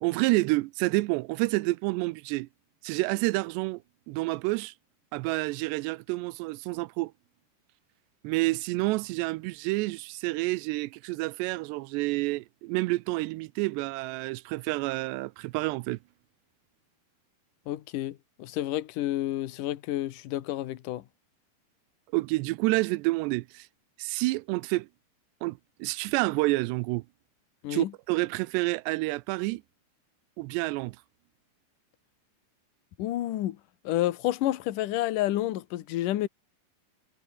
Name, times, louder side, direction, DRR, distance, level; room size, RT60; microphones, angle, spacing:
voice 1, 0.0-2.5 2.8-4.7 5.1-7.1 8.2-16.0 22.1-23.7 24.0-24.9 25.4-27.0 27.7-29.6 30.4-31.0, right 22 dB, 90° right, 2.8 m, -29 dB
voice 2, 17.7-21.0 27.6-27.9 33.0-33.6 33.8-36.3, left 14 dB, 65° left, 2.5 m, -30 dB
omnidirectional pair, 4.9 m